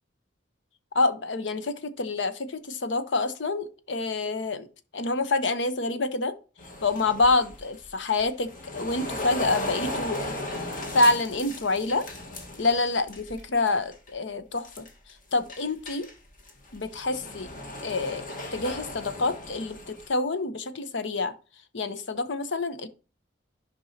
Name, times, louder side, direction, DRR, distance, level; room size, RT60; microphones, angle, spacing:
voice 1, 0.9-4.7 4.9-6.3 6.8-10.2 10.9-12.0 12.6-14.9 15.3-16.1 16.7-17.5 17.8-18.2 18.5-21.3 21.7-22.9, left 3 dB, 75° left, 0.8 m, -27 dB
sound 1, 6.6-13.4 13.7-14.1 14.6-15.1 15.5-20.1, left 1 dB, 45° left, 1.4 m, -36 dB
10.5 x 5.4 x 2.8 m
head